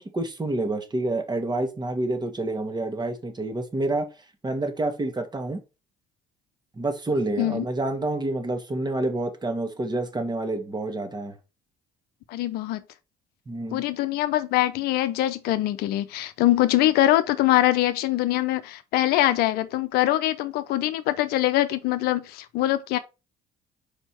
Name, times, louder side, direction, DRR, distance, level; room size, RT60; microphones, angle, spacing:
voice 1, 0.0-4.1 4.4-5.6 6.8-11.4 13.5-13.8, right 2 dB, 25° right, 1.8 m, -28 dB
voice 2, 12.3-12.8 13.7-23.0, left 14 dB, 70° left, 0.6 m, -23 dB
5.2 x 4.4 x 4.4 m
hypercardioid pair, 55°, 17 cm